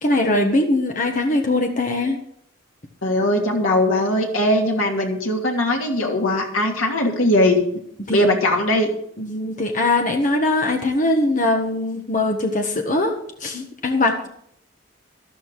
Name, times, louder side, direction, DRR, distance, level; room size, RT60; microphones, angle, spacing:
voice 1, 0.0-2.2 8.1-8.3 9.2-13.1 13.4-14.3, left 2 dB, 40° left, 3 dB, 1.4 m, -21 dB
voice 2, 3.0-7.7 8.1-8.9, left 1 dB, 80° left, 1 dB, 2.9 m, -20 dB
13.5 x 12.5 x 4.8 m, 0.69 s
head